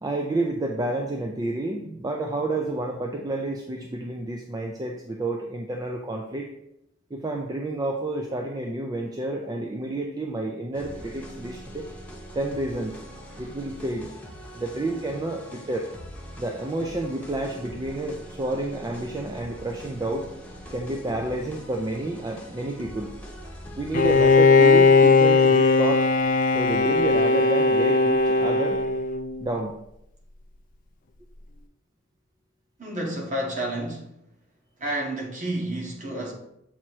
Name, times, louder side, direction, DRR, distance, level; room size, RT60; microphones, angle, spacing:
voice 1, 0.0-6.5 7.1-11.9 12.3-13.0 13.4-14.1 14.5-15.9 16.4-20.3 20.7-23.1 23.8-26.1 26.5-28.8 29.4-29.8, right 2 dB, 20° right, 1 dB, 0.4 m, -30 dB
sound 1, 10.7-24.4, equal, 10° left, 0.9 m, -42 dB
Bowed string instrument, 23.9-29.5, left 4 dB, 45° left, 0.4 m, -18 dB
voice 2, 32.8-34.1 34.8-36.3, right 1 dB, 40° right, -1 dB, 1.4 m, -30 dB
7.3 x 2.9 x 4.5 m, 0.80 s
head